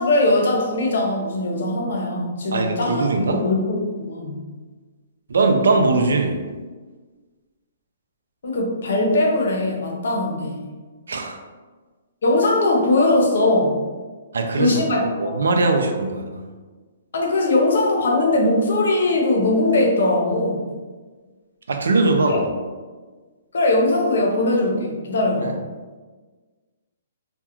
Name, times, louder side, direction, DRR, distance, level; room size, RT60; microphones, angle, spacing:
voice 1, 0.0-4.4 8.4-10.7 12.2-13.8 14.6-15.5 17.1-20.6 22.2-22.4 23.5-25.6, left 2 dB, 70° left, 0 dB, 0.6 m, -20 dB
voice 2, 2.5-3.4 5.3-6.4 11.1-11.4 14.3-16.5 21.7-22.5 25.4-25.5, right 3 dB, 85° right, 4 dB, 0.4 m, -20 dB
2.3 x 2.1 x 2.9 m, 1.4 s
hypercardioid pair, 155°, 0 cm